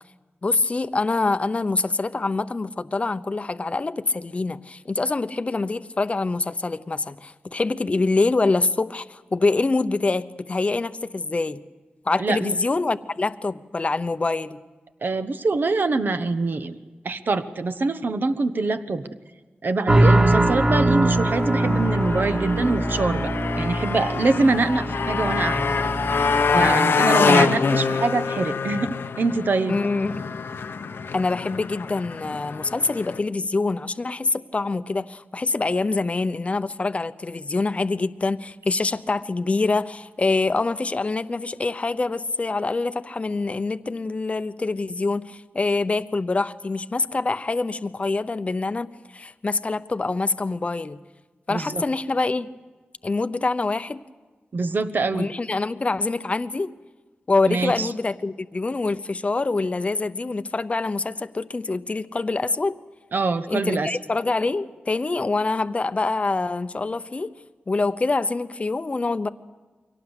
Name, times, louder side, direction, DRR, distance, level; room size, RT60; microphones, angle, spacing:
voice 1, 0.4-11.6 12.0-14.6 26.5-26.9 29.7-30.3 31.1-51.0 51.5-52.5 53.0-54.0 55.1-56.7 57.3-62.8 63.5-67.3 67.7-69.3, left 3 dB, 35° left, 12 dB, 0.8 m, -25 dB
voice 2, 12.2-12.5 15.0-16.8 17.0-19.1 19.6-23.3 23.6-25.6 26.5-29.8 51.5-51.8 54.5-55.3 57.5-57.9 63.1-63.9, right 3 dB, 60° right, 9 dB, 1.2 m, -24 dB
sound 1, 19.9-26.7, right 1 dB, 30° right, 3.2 m, -22 dB
Motorcycle, 21.1-33.2, left 5 dB, 90° left, 0.9 m, -25 dB
24.0 x 18.0 x 8.1 m, 1.3 s
wide cardioid pair, 105°, 4 cm